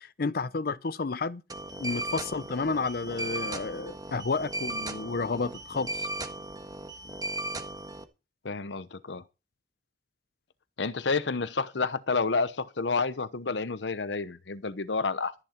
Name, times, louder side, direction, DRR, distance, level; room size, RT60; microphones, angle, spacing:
voice 1, 0.0-1.4 1.8-6.1, left 4 dB, 60° left, 0.6 m, -31 dB
sound 1, 1.5-8.0, right 1 dB, 20° right, 1.5 m, -36 dB
voice 2, 8.4-9.2 10.8-15.3, left 4 dB, 90° left, 0.9 m, -29 dB
14.0 x 11.0 x 4.4 m
head